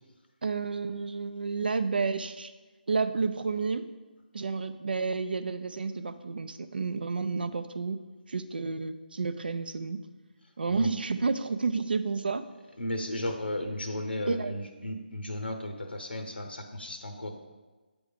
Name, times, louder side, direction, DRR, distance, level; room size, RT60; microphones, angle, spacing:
voice 1, 0.4-2.5 2.9-3.8 4.3-8.0 8.3-10.0 10.6-12.4 14.3-14.5, right 4 dB, 65° right, 10 dB, 0.5 m, -30 dB
voice 2, 12.8-17.4, left 1 dB, 85° left, 5 dB, 0.9 m, -35 dB
9.1 x 3.5 x 5.1 m, 1.3 s
figure-of-eight pair, 155°, 5 cm